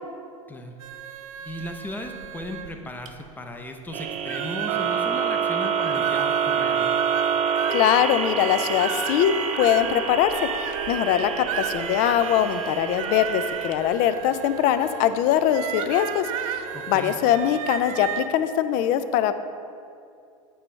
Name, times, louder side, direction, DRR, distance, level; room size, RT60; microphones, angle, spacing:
sound 1, 0.8-3.3 3.9-4.0 4.3-18.3, right 9 dB, 75° right, 0.5 m, -34 dB
voice 1, 1.4-6.9 16.7-17.1, left 1 dB, 10° left, 4 dB, 0.6 m, -36 dB
sound 2, 3.9-18.2, right 6 dB, 40° right, 0.7 m, -29 dB
voice 2, 7.7-10.3 10.6-19.4, left 10 dB, 50° left, 12 dB, 0.4 m, -22 dB
8.8 x 4.8 x 3.2 m, 2.4 s
hypercardioid pair, 100°, 17 cm